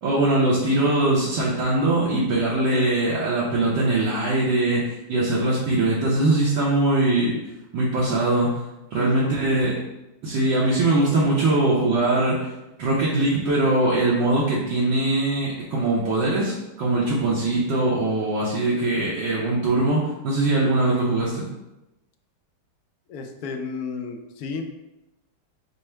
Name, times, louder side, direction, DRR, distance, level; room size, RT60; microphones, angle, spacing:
voice 1, 0.0-7.3 7.7-8.6 8.9-9.7 10.2-12.5 12.8-21.4, right 2 dB, 70° right, -6 dB, 1.4 m, -21 dB
voice 2, 9.0-9.7 23.1-24.7, left 4 dB, 80° left, 3 dB, 0.8 m, -33 dB
5.4 x 2.0 x 4.4 m, 0.96 s
omnidirectional pair, 2.2 m